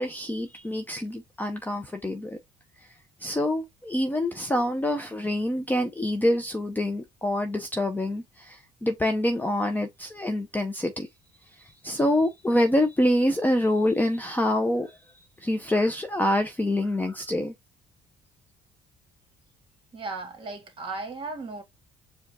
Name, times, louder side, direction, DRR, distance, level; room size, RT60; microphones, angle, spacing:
voice 1, 0.0-2.4 3.2-11.1 11.8-15.0 15.4-17.5, left 1 dB, 10° left, 0.6 m, -26 dB
voice 2, 19.9-21.6, right 3 dB, 30° right, 1.9 m, -36 dB
5.0 x 2.4 x 4.1 m
cardioid pair, 110°, 17 cm